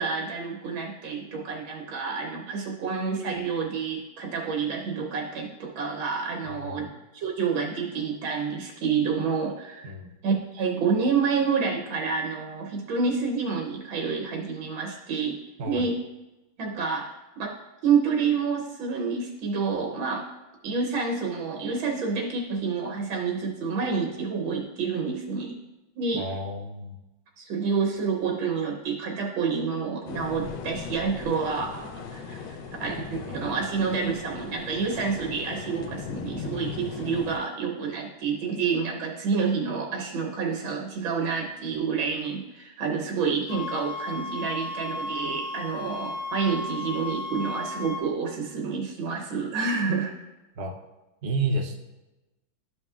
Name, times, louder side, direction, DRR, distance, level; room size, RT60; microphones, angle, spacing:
voice 1, 0.0-6.9 7.1-9.9 10.2-15.4 15.6-16.0 16.6-17.1 17.4-17.5 17.8-20.2 20.6-25.6 25.9-26.3 27.4-32.4 32.8-50.1, right 5 dB, 85° right, 0 dB, 1.7 m, -28 dB
voice 2, 6.4-6.9 9.8-10.1 15.6-15.9 26.1-27.0 50.6-50.7 51.2-51.8, right 2 dB, 55° right, 1 dB, 0.7 m, -31 dB
sound 1, 30.1-37.4, left 6 dB, 75° left, 1.3 m, -38 dB
sound 2, 43.5-48.0, left 2 dB, 55° left, 1.7 m, -34 dB
12.0 x 5.5 x 2.4 m, 1.0 s
omnidirectional pair, 2.1 m